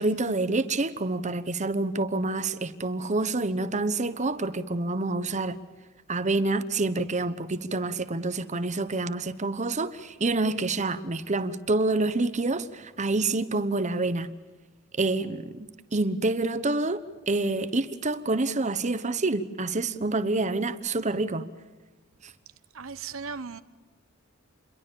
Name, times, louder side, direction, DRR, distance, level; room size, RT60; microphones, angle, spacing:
voice 1, 0.0-5.6 6.1-14.3 15.0-21.5 22.2-22.3, right 2 dB, 35° right, 1.1 m, -27 dB
voice 2, 22.7-23.6, right 5 dB, 70° right, 1.0 m, -37 dB
28.5 x 22.5 x 7.0 m
head